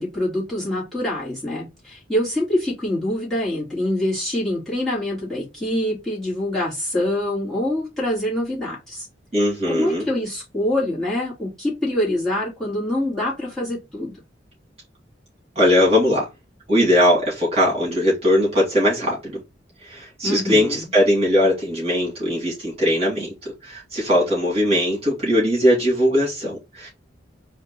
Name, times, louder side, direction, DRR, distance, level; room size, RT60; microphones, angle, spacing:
voice 1, 0.0-9.1 9.7-14.1 20.2-20.9, left 1 dB, 5° left, 2.6 m, -25 dB
voice 2, 9.3-10.1 15.6-16.3 16.7-19.4 19.8-26.9, left 1 dB, 35° right, 2.3 m, -20 dB
4.3 x 2.9 x 4.1 m
head